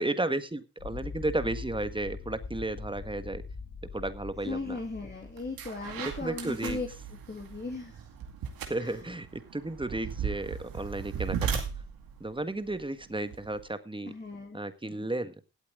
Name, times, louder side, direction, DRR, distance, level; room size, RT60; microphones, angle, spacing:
voice 1, 0.0-3.4 3.9-4.8 6.2-6.8 8.7-9.3 9.5-11.6 12.2-14.1 14.5-15.3, right 2 dB, 15° right, 11 dB, 1.7 m, -33 dB
sound 1, 0.8-5.8, left 4 dB, 65° left, 3.3 m, -42 dB
voice 2, 4.4-8.0 8.7-9.1 14.0-14.6, left 3 dB, 30° left, 1 dB, 3.2 m, -38 dB
sound 2, 4.8-5.0 5.4-13.6, right 7 dB, 75° right, 2.3 m, -37 dB
17.0 x 8.3 x 3.8 m, 0.29 s
supercardioid pair, 40°, 35 cm